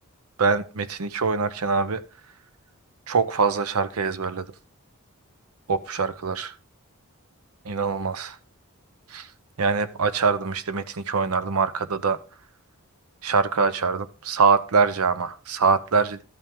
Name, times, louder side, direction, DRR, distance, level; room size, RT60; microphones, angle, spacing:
voice 1, 0.4-2.0 3.1-4.5 5.7-6.5 7.6-8.4 9.1-9.3 9.6-12.2 13.2-16.2, right 5 dB, 75° right, 13 dB, 0.7 m, -23 dB
13.0 x 5.7 x 3.5 m, 0.34 s
head